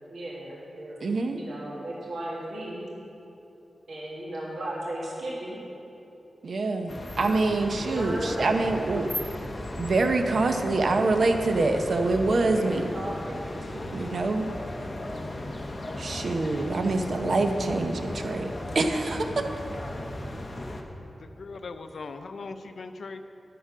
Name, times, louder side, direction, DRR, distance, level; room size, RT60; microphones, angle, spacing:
voice 1, 0.1-1.0 1.3-2.9 3.9-5.6 7.7-8.7 12.3-14.1 20.2-20.3, right 1 dB, 85° right, -5 dB, 1.9 m, -36 dB
voice 2, 1.0-1.4 6.4-9.4 9.8-12.9 13.9-14.5 16.0-19.4, right 3 dB, 65° right, 5 dB, 0.7 m, -25 dB
sound 1, 6.9-20.8, left 1 dB, 30° left, 0.9 m, -36 dB
voice 3, 21.2-23.2, left 4 dB, 65° left, 8 dB, 0.5 m, -39 dB
11.0 x 6.7 x 6.1 m, 2.9 s
wide cardioid pair, 100°, 0 cm